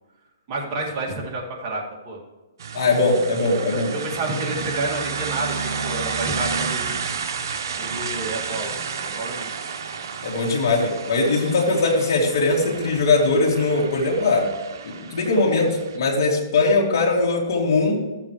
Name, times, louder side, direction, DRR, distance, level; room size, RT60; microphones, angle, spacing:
voice 1, 0.5-2.2 3.5-7.0 7.8-9.5, right 2 dB, 35° right, -2 dB, 2.2 m, -30 dB
sound 1, 2.6-16.0, right 5 dB, 65° right, 1.0 m, -31 dB
voice 2, 2.7-3.9 10.2-14.5 14.8-18.0, left 3 dB, 60° left, -2 dB, 2.5 m, -20 dB
14.0 x 7.4 x 3.2 m, 1.2 s
hypercardioid pair, 155°, 2 cm